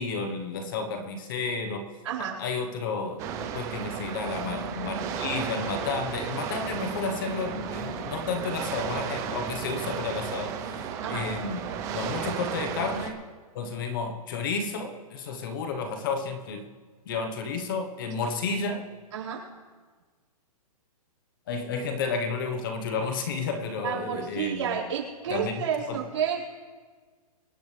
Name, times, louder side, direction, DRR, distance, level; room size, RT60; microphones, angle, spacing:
voice 1, 0.0-1.9 2.2-3.3 3.5-11.6 11.9-13.2 13.5-16.7 17.1-18.8 21.5-24.8 25.3-25.5 25.9-26.0, left 4 dB, 35° left, 6 dB, 1.1 m, -31 dB
voice 2, 2.0-2.4 11.0-11.2 18.2-18.3 19.1-19.4 23.8-26.5, right 8 dB, 50° right, -7 dB, 4.8 m, -30 dB
sound 1, 3.2-13.1, right 7 dB, 15° right, 0.7 m, -34 dB
26.0 x 10.5 x 3.3 m, 1.5 s
hypercardioid pair, 170°, 20 cm